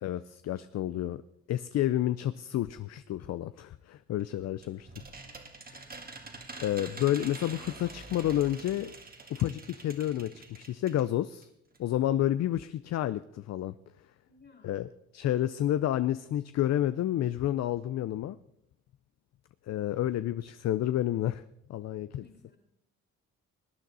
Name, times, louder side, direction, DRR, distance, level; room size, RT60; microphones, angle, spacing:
voice 1, 0.0-1.2 1.5-4.9 6.6-9.0 9.3-11.5 11.8-13.7 14.6-18.4 19.7-21.4 21.7-22.2, left 12 dB, 60° left, 14 dB, 0.5 m, -30 dB
sound 1, 4.2-11.1 11.4-11.5 11.7-11.8, right 3 dB, 30° right, 1.7 m, -46 dB
voice 2, 14.2-14.9 22.2-22.6, left 4 dB, 35° left, 3 dB, 3.0 m, -58 dB
19.5 x 9.2 x 4.1 m, 0.78 s
cardioid pair, 90°, 30 cm